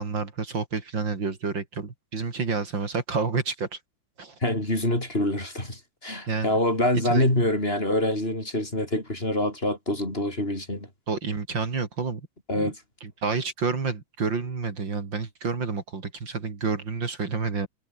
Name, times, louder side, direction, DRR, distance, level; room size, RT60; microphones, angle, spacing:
voice 1, 0.0-3.7 4.2-4.4 6.3-6.6 7.1-7.2 11.1-12.2 12.5-12.7 13.0-17.7, right 4 dB, 65° right, 3.8 m, -29 dB
voice 2, 4.4-10.9 12.5-12.8, left 1 dB, 30° left, 6.7 m, -25 dB
omnidirectional pair, 2.2 m